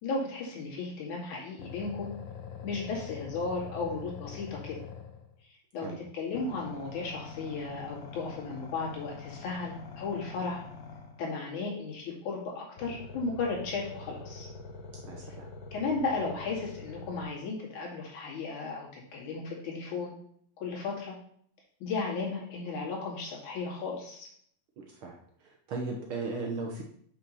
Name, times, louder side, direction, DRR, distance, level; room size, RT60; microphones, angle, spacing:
voice 1, 0.0-2.1 2.6-4.8 5.7-5.9 6.1-10.6 11.2-14.5 15.7-20.1 20.6-21.2 21.8-24.3, left 4 dB, 90° left, -3 dB, 3.8 m, -35 dB
sound 1, 1.6-5.4 6.4-11.3 12.8-17.2, left 5 dB, 65° left, 1.2 m, -44 dB
voice 2, 15.0-15.5 24.8-25.2 25.7-26.8, right 3 dB, 60° right, 1 dB, 1.5 m, -36 dB
6.9 x 5.7 x 5.5 m, 0.64 s
omnidirectional pair, 3.4 m